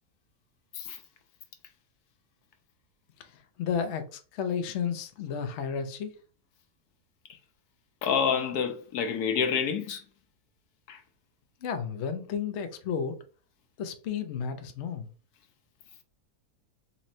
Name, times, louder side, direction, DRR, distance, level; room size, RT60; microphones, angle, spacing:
voice 1, 3.6-6.1 11.6-13.2 13.8-15.1, left 7 dB, 60° left, 0.8 m, -32 dB
voice 2, 8.0-10.0 10.9-11.0, left 6 dB, 75° left, 1.2 m, -28 dB
4.1 x 3.0 x 2.6 m
omnidirectional pair, 1.7 m